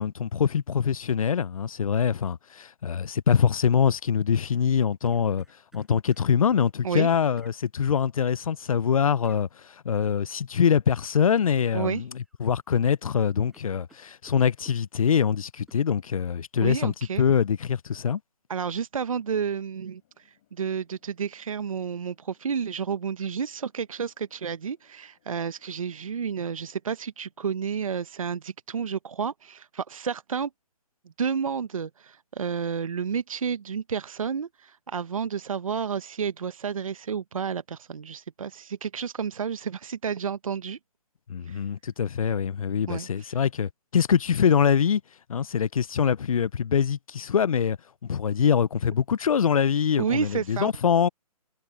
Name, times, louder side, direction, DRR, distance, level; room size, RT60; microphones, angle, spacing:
voice 1, 0.0-5.4 5.7-18.2 41.3-45.0 45.3-47.8 48.0-51.1, left 7 dB, 65° left, 0.5 m, -24 dB
sound 1, 4.5-6.3 7.4-7.6 9.2-9.4 11.4-11.7 12.1-12.8 13.1-13.2 13.5-15.2 15.7-15.8, right 2 dB, ahead, 5.3 m, -59 dB
voice 2, 11.7-12.0 16.6-17.2 18.5-30.5 31.2-40.8 41.5-41.7 42.9-43.4 50.0-50.7, right 6 dB, 60° right, 0.8 m, -31 dB
Wind, 20.0-28.7, left 14 dB, 25° left, 6.6 m, -72 dB
hypercardioid pair, 170°, 20 cm